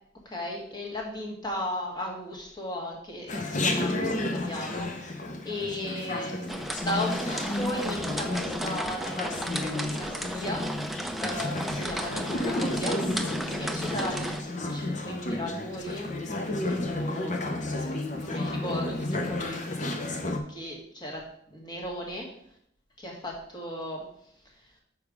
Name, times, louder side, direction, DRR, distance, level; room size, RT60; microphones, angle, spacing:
voice 1, 0.2-6.6 6.8-10.7 11.2-14.3 14.6-17.4 17.7-19.9 20.5-22.3 23.0-24.1 24.4-24.7, left 1 dB, 20° left, -1 dB, 1.6 m, -36 dB
Chatter, 3.3-20.4, left 2 dB, 35° left, 0.8 m, -32 dB
sound 1, 6.5-14.4, right 1 dB, ahead, 0.4 m, -34 dB
6.9 x 4.9 x 4.9 m, 0.69 s
head